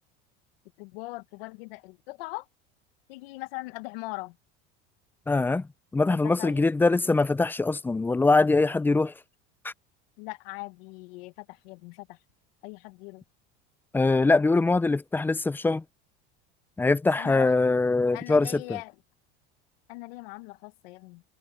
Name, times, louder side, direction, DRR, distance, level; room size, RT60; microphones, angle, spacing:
voice 1, 0.8-2.5 3.1-4.4 6.1-6.6 6.9-7.0 10.2-12.2 12.6-13.2 17.2-17.5 18.1-18.9 19.9-21.2, left 22 dB, 80° left, 1.5 m, -40 dB
voice 2, 5.3-9.1 9.6-9.7 13.9-15.8 16.8-18.6, left 3 dB, 5° left, 0.4 m, -23 dB
supercardioid pair, 120°, 29 cm